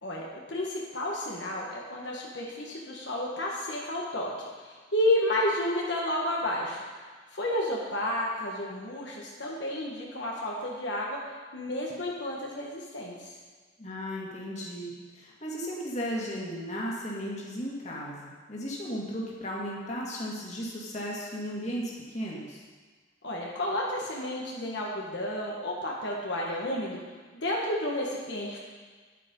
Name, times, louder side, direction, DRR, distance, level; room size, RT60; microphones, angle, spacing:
voice 1, 0.0-4.3 4.6-6.8 7.3-11.2 11.5-13.3 23.2-27.0 27.3-28.6, left 1 dB, 75° left, -3 dB, 1.5 m, -31 dB
voice 2, 13.8-22.6, equal, 40° left, -4 dB, 2.3 m, -35 dB
10.5 x 8.6 x 5.4 m, 1.4 s
head